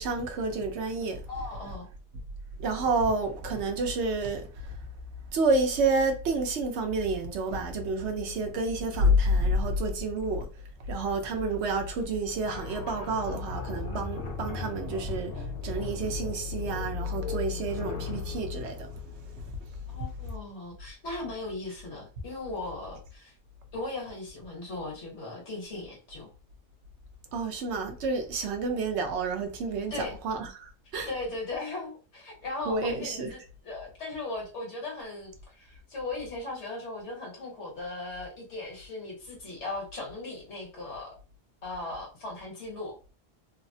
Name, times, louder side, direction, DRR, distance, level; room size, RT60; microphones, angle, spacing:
voice 1, 0.0-1.2 2.6-4.8 5.3-10.5 10.9-19.0 19.4-19.5 27.3-31.1 32.7-33.3, right 2 dB, 80° right, 1.0 m, -29 dB
voice 2, 1.3-1.9 19.9-23.3 23.7-26.3 29.9-30.2 31.1-41.2 41.6-43.0, left 2 dB, 80° left, 1.6 m, -38 dB
sound 1, 12.4-19.8, left 3 dB, 65° left, 0.8 m, -39 dB
3.4 x 2.0 x 2.6 m
omnidirectional pair, 1.1 m